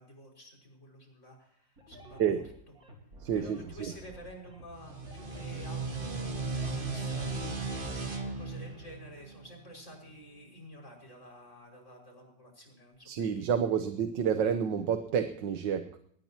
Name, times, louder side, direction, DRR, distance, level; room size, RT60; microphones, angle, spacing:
voice 1, 0.0-2.4 3.3-8.1 8.4-13.1 13.3-13.5, equal, 40° left, 1 dB, 6.2 m, -50 dB
sound 1, 1.8-7.8, equal, 55° right, 4.8 m, -51 dB
voice 2, 3.2-3.6 13.1-16.0, right 7 dB, 85° right, 8 dB, 1.7 m, -29 dB
sound 2, 4.8-10.1, right 3 dB, 30° right, 1.9 m, -36 dB
21.5 x 19.5 x 2.9 m, 0.67 s
omnidirectional pair, 1.9 m